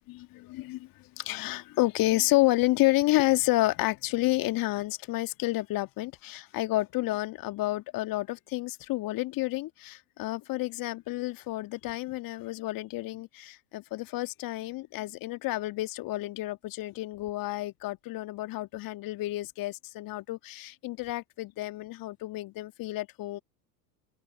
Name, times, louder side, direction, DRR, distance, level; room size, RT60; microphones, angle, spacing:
voice 1, 0.1-23.4, left 18 dB, 45° left, 1.7 m, -30 dB
open air
figure-of-eight pair, 75°, 49 cm